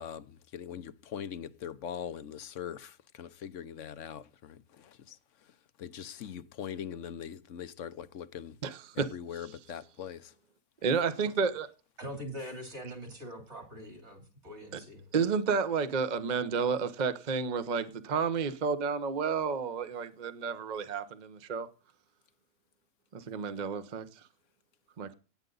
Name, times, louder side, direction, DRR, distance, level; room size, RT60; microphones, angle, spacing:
voice 1, 0.0-5.2 5.8-8.6 9.0-10.3, left 8 dB, 60° left, 1.1 m, -42 dB
voice 2, 8.6-9.1 10.8-11.7 14.7-14.8 15.1-21.7 23.1-24.0 25.0-25.1, right 5 dB, 35° right, 1.0 m, -31 dB
voice 3, 12.0-15.0, equal, 50° right, 3.5 m, -43 dB
18.0 x 8.0 x 4.0 m
omnidirectional pair, 1.5 m